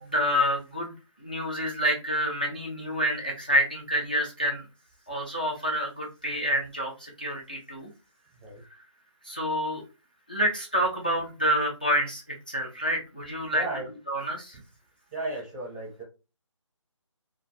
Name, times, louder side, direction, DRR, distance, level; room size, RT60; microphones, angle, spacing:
voice 1, 0.0-0.9 1.2-4.6 5.1-7.9 9.2-9.8 10.3-13.6 14.1-14.6, equal, 15° left, -1 dB, 0.3 m, -28 dB
voice 2, 13.5-13.9 15.1-16.0, right 2 dB, 10° right, -5 dB, 0.7 m, -34 dB
2.4 x 2.3 x 3.1 m, 0.30 s
figure-of-eight pair, 170°, 17 cm